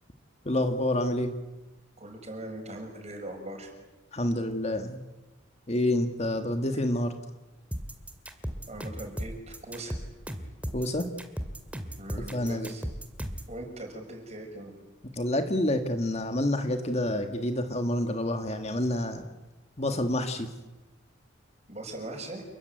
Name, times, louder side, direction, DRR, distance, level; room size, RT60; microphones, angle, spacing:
voice 1, 0.5-1.3 4.1-5.0 5.7-7.2 10.7-11.1 12.3-12.7 15.2-19.2 19.8-20.5, left 1 dB, 30° left, 7 dB, 1.8 m, -28 dB
voice 2, 2.0-3.7 6.7-6.8 8.7-10.0 12.0-12.8 13.5-14.7 21.7-22.4, right 1 dB, 35° right, 3 dB, 6.3 m, -40 dB
sound 1, 7.7-13.5, equal, 5° right, 2.3 m, -36 dB
29.0 x 22.0 x 9.3 m, 1.1 s
head